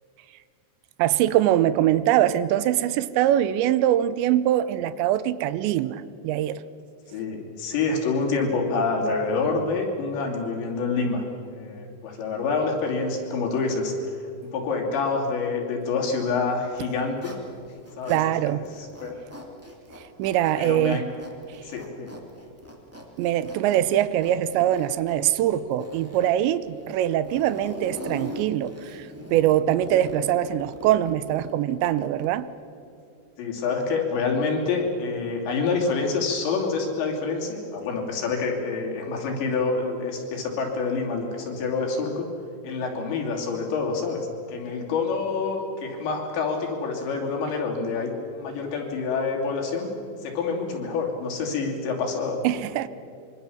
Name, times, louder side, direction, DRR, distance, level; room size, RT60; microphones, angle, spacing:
voice 1, 1.0-6.6 18.1-18.7 20.0-21.0 23.2-32.5 52.4-52.9, right 12 dB, 80° right, 15 dB, 2.9 m, -23 dB
voice 2, 7.1-17.3 18.0-18.2 18.5-19.2 20.6-21.1 21.6-22.1 33.4-42.3 42.6-49.9 50.2-52.6, left 4 dB, 75° left, 0 dB, 5.2 m, -27 dB
Zipper (clothing), 16.6-18.3 18.6-32.4, equal, 5° right, 1.1 m, -41 dB
25.0 x 23.5 x 7.2 m, 2.5 s
omnidirectional pair, 5.2 m